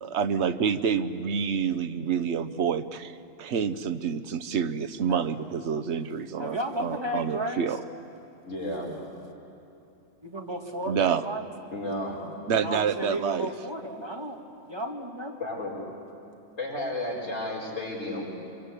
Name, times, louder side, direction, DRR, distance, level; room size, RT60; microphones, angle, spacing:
voice 1, 0.0-7.8 10.9-11.2 12.5-13.5, right 7 dB, 65° right, 12 dB, 1.1 m, -28 dB
voice 2, 6.4-7.7 10.2-11.5 12.6-14.4 14.6-15.4, right 1 dB, 20° right, 2 dB, 1.9 m, -33 dB
voice 3, 8.5-8.9 11.7-12.2 15.4-15.8 16.6-18.3, left 1 dB, 75° left, -3 dB, 5.5 m, -32 dB
25.0 x 24.0 x 8.4 m, 2.9 s
omnidirectional pair, 1.3 m